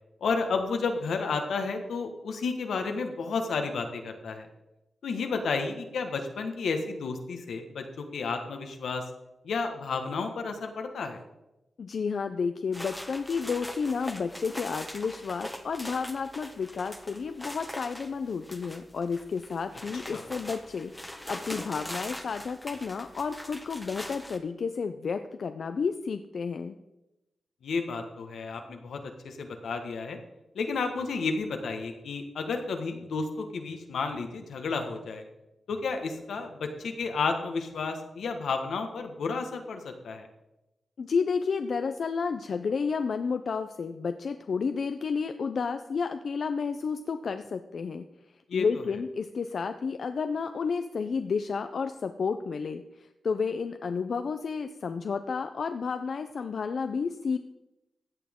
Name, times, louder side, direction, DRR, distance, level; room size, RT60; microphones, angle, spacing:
voice 1, 0.2-4.5 5.0-9.0 9.4-11.2 20.1-20.2 27.6-30.2 30.5-35.2 35.7-40.3 48.5-48.6, left 4 dB, 90° left, 5 dB, 1.4 m, -32 dB
voice 2, 11.8-20.9 21.3-26.8 41.0-48.1 48.5-57.4, left 5 dB, 65° left, 8 dB, 0.5 m, -31 dB
sound 1, 12.7-24.4, left 1 dB, 5° left, 1.1 m, -42 dB
15.5 x 8.4 x 3.7 m, 0.95 s
cardioid pair, 90°, 0 cm